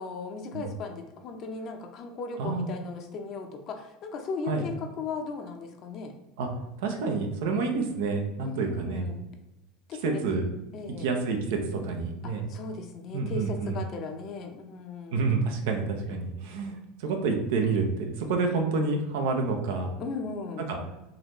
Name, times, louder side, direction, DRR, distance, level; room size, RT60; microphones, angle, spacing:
voice 1, 0.0-6.1 8.4-9.2 9.9-10.2 10.7-11.1 12.2-15.3 20.0-20.7, left 4 dB, 50° left, 5 dB, 0.6 m, -37 dB
voice 2, 2.4-2.7 4.5-4.6 6.4-6.5 6.8-9.1 10.0-10.5 11.0-12.5 13.1-13.8 15.1-19.9 20.7-20.8, right 4 dB, 75° right, 3 dB, 0.7 m, -28 dB
4.0 x 2.7 x 3.0 m, 0.96 s
supercardioid pair, 100°, 0 cm